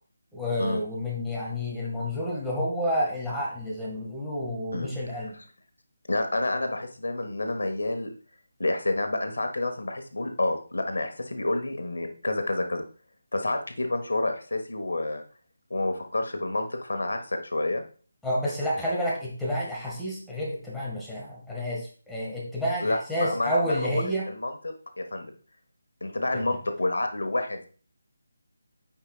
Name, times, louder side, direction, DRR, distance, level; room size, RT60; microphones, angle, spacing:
voice 1, 0.3-5.3 18.2-24.3 26.3-26.4, equal, 5° left, -6 dB, 1.6 m, -29 dB
voice 2, 4.7-5.4 6.1-8.1 8.6-12.8 13.3-15.2 15.7-17.8 22.8-25.3 26.0-27.7, left 2 dB, 80° left, 6 dB, 1.2 m, -29 dB
8.7 x 4.9 x 2.4 m, 0.40 s
figure-of-eight pair, 160°, 0 cm